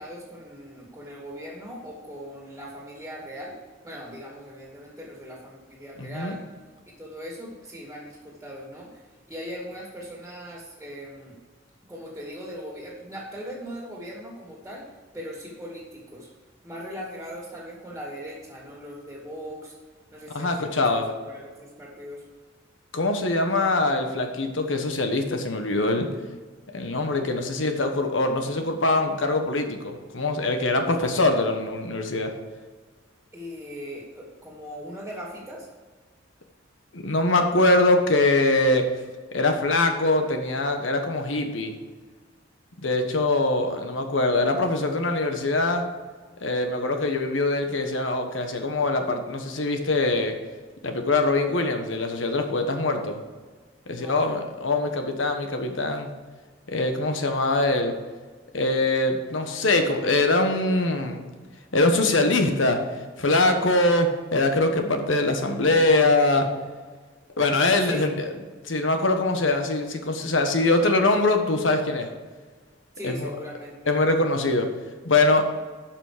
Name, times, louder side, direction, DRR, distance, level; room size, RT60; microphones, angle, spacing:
voice 1, 0.0-3.6 3.8-6.4 6.9-11.4 11.9-16.3 16.6-19.7 20.1-22.2 33.3-35.7 53.9-54.2 67.6-68.1 72.9-73.9, equal, 5° right, -3 dB, 2.4 m, -39 dB
voice 2, 6.0-6.3 20.3-21.1 22.9-26.1 26.7-32.3 36.9-38.8 39.3-41.7 42.8-45.8 46.4-50.4 50.8-53.2 53.9-56.1 56.7-57.9 58.5-61.2 61.7-62.8 63.2-66.5 67.4-68.3 68.6-72.1 73.0-73.3 73.9-74.7 75.0-75.5, left 2 dB, 80° left, 5 dB, 1.2 m, -23 dB
12.0 x 6.1 x 5.0 m, 1.4 s
head